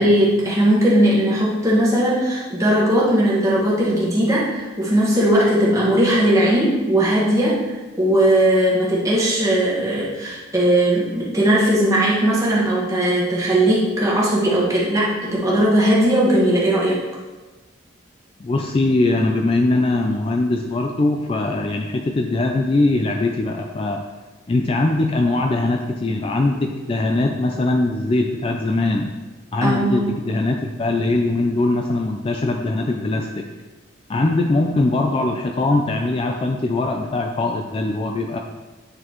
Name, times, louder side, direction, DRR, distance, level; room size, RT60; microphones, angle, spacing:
voice 1, 0.0-17.0 29.6-30.1, right 1 dB, 15° right, -6 dB, 1.4 m, -18 dB
voice 2, 18.4-24.0 24.5-29.1 29.5-33.5 34.1-38.4, left 2 dB, 30° left, 3 dB, 0.3 m, -21 dB
9.2 x 3.9 x 3.0 m, 1.2 s
head